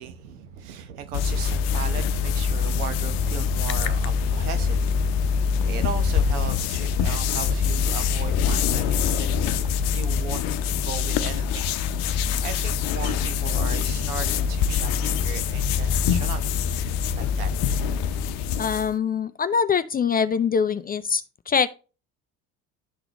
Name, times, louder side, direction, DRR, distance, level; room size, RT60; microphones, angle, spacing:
voice 1, 0.0-9.3 9.6-11.7 12.4-16.5 16.8-17.5, right 8 dB, 85° right, 1.1 m, -37 dB
sound 1, 1.1-18.9, left 6 dB, 65° left, 0.7 m, -24 dB
voice 2, 18.6-21.7, left 6 dB, 20° left, 0.4 m, -23 dB
11.0 x 3.9 x 2.9 m
hypercardioid pair, 70°, 44 cm